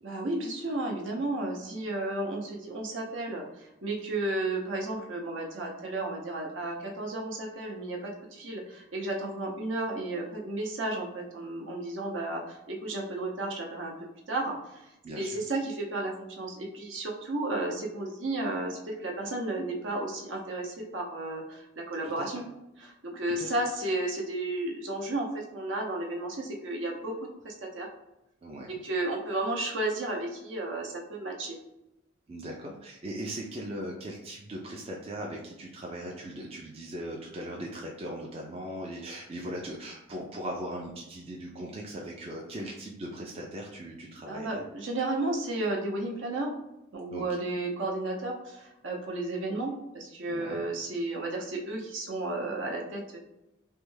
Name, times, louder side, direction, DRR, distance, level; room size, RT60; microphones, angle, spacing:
voice 1, 0.0-13.9 14.3-14.9 15.1-22.4 22.8-27.1 27.4-27.9 28.7-31.6 44.3-46.5 46.9-53.2, right 2 dB, 65° right, -1 dB, 0.7 m, -33 dB
voice 2, 15.0-15.4 22.0-22.3 23.3-23.5 28.4-28.7 32.3-44.6 47.1-47.3 50.3-50.6, right 1 dB, 30° right, -1 dB, 0.4 m, -39 dB
3.2 x 2.2 x 3.2 m, 0.91 s
head